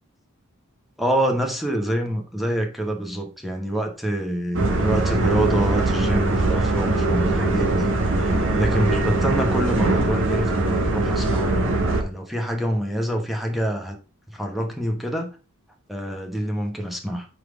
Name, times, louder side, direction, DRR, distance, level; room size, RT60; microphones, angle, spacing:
voice 1, 1.0-14.0 14.3-15.3 15.9-17.3, right 1 dB, ahead, 1.1 m, -26 dB
sound 1, 4.5-12.0, right 2 dB, 60° right, 1.3 m, -21 dB
5.3 x 4.3 x 4.8 m
head